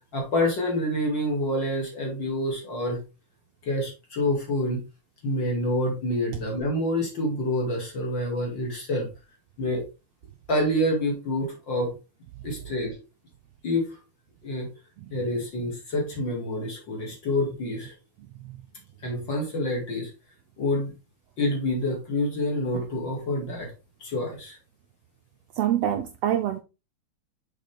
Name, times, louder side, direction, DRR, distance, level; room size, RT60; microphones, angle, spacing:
voice 1, 0.1-3.0 3.6-4.8 5.2-9.1 9.6-9.8 10.5-12.0 12.4-13.0 13.6-14.0 14.4-14.7 15.1-17.9 19.0-20.1 20.6-20.9 21.4-23.7 24.0-24.6, left 1 dB, 40° left, 2.7 m, -27 dB
voice 2, 25.6-26.6, right 11 dB, 85° right, 1.4 m, -26 dB
6.5 x 5.0 x 3.5 m
omnidirectional pair, 3.5 m